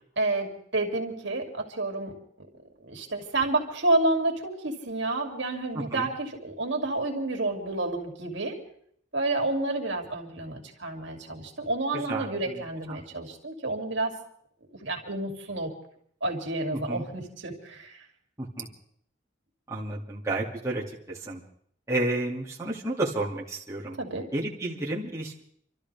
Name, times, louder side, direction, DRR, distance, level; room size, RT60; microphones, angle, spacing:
voice 1, 0.2-2.1 2.4-2.5 2.8-8.6 9.1-14.2 14.8-15.7 16.2-18.0 24.0-24.3, right 2 dB, 75° right, 1 dB, 2.8 m, -29 dB
voice 2, 5.7-6.1 11.9-12.6 12.9-13.0 16.7-17.0 18.4-18.7 19.7-21.4 21.9-24.0 24.3-25.4, right 2 dB, 15° right, -5 dB, 2.3 m, -31 dB
28.5 x 13.0 x 3.5 m, 0.65 s
head